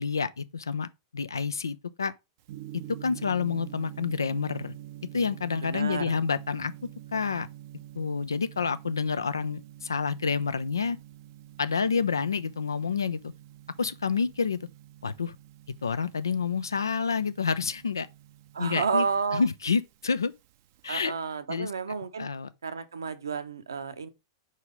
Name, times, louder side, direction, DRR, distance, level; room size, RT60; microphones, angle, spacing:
voice 1, 0.0-2.1 2.7-4.7 5.1-6.7 7.1-7.5 8.0-11.0 11.6-13.3 13.8-14.6 15.0-15.3 15.8-18.1 18.6-19.1 19.3-20.3 20.8-21.1 21.5-21.7 22.2-22.5, left 5 dB, 75° left, 0.5 m, -28 dB
Gong, 2.4-21.1, right 13 dB, 50° right, 0.5 m, -47 dB
voice 2, 5.6-6.1 18.5-19.4 20.9-22.3 22.6-24.1, right 5 dB, 75° right, 0.8 m, -31 dB
4.9 x 4.1 x 5.0 m
figure-of-eight pair, 95°, 2 cm